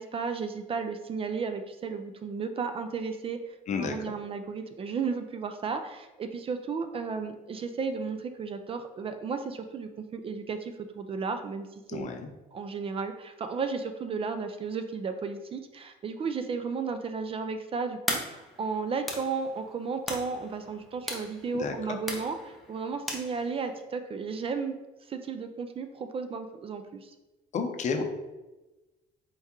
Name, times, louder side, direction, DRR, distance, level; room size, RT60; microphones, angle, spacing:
voice 1, 0.0-12.1 12.5-24.7 25.1-27.1, right 5 dB, 35° right, 8 dB, 0.4 m, -34 dB
voice 2, 11.9-12.3 21.5-22.0 27.5-28.0, left 5 dB, 45° left, 5 dB, 0.6 m, -31 dB
sound 1, 18.1-23.8, left 1 dB, ahead, 0.7 m, -39 dB
4.5 x 3.5 x 2.9 m, 1.1 s
cardioid pair, 110°, 17 cm